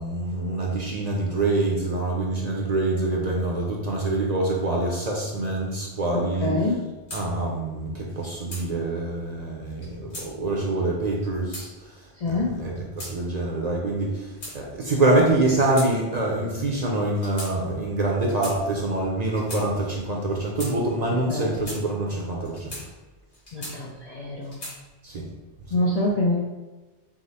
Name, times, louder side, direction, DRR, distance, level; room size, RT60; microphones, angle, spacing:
voice 1, 0.0-6.8 7.1-22.8 25.0-25.2, right 2 dB, 45° right, -2 dB, 0.6 m, -25 dB
voice 2, 6.4-6.8 12.2-12.5 21.3-21.5 23.5-24.6 25.7-26.4, left 1 dB, 50° left, -3 dB, 0.5 m, -25 dB
sound 1, 7.1-7.2 8.1-8.6 9.7-10.3 11.1-11.7 12.5-13.1 14.0-14.9 15.5-15.9 16.2-16.4 17.1-17.5 18.2-18.6 19.2-19.6 20.3-20.7 21.4-21.8 22.4-22.8 23.3-24.0 24.4-24.8, left 1 dB, 70° left, 1.7 m, -38 dB
4.8 x 2.1 x 4.1 m, 1.2 s
omnidirectional pair, 1.1 m